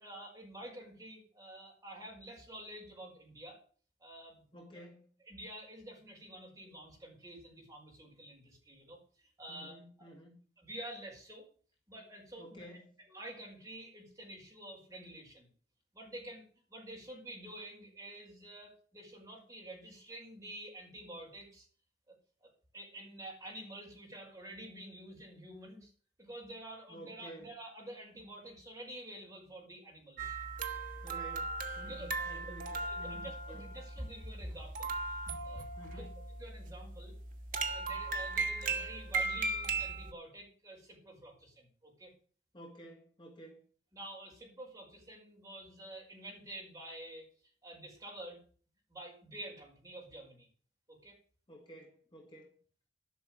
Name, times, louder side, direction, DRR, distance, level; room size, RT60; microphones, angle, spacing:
voice 1, 0.0-3.6 4.0-4.6 5.3-10.1 10.6-11.5 11.9-12.7 13.1-15.5 15.9-21.7 22.4-25.9 26.2-30.4 31.8-32.4 32.7-35.0 35.3-36.1 36.4-37.1 37.5-42.1 43.9-47.3 47.6-48.4 48.9-50.5 50.9-51.2, right 1 dB, 20° right, 5.3 m, -49 dB
voice 2, 4.5-5.1 9.5-10.4 12.4-12.9 26.9-27.5 31.0-33.6 35.8-36.2 42.5-43.6 51.5-52.6, equal, 25° left, 2.2 m, -52 dB
sound 1, 30.2-40.1, right 3 dB, 50° right, 1.2 m, -38 dB
12.0 x 6.3 x 7.8 m
head